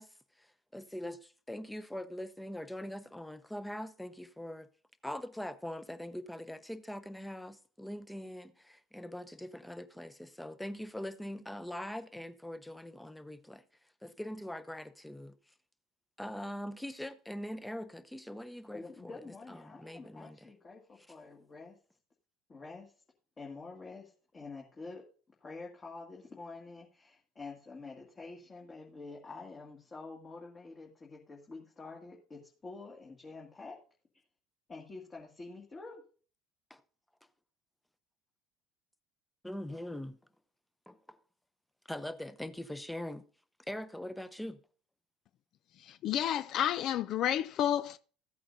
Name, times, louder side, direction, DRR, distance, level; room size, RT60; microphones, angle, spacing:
voice 1, 0.0-4.7 5.0-13.6 14.0-15.5 16.2-20.5 21.0-21.1 36.7-36.8 39.4-40.2 40.9-41.2 41.8-43.3 43.7-44.6, left 1 dB, 5° left, 0.8 m, -42 dB
voice 2, 18.7-21.8 22.5-22.9 23.4-25.0 25.4-33.8 34.7-36.0, left 3 dB, 30° left, 2.1 m, -47 dB
voice 3, 45.9-48.0, left 10 dB, 55° left, 0.3 m, -30 dB
14.5 x 8.4 x 2.7 m
hypercardioid pair, 65°, 0 cm